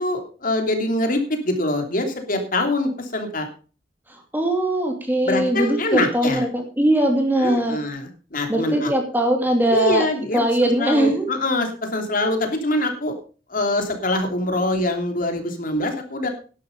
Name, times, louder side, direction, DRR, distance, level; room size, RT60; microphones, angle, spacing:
voice 1, 0.0-3.5 5.2-6.4 7.4-8.9 9.7-13.1 13.5-16.3, left 1 dB, 50° left, 5 dB, 3.1 m, -24 dB
voice 2, 4.3-7.8 8.5-10.1 10.3-11.3, right 1 dB, 10° right, 3 dB, 2.6 m, -20 dB
11.5 x 11.5 x 5.3 m, 0.36 s
head